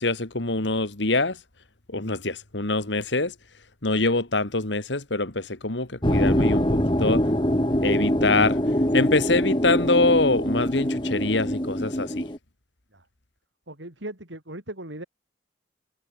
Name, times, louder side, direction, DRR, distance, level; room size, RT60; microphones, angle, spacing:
voice 1, 0.0-1.4 1.9-3.3 3.8-6.7 7.0-7.2 7.8-8.6 8.9-12.3, left 2 dB, 75° left, 2.4 m, -24 dB
sound 1, 6.0-12.4, equal, 25° left, 2.7 m, -24 dB
voice 2, 13.7-15.0, right 1 dB, 85° right, 5.5 m, -38 dB
head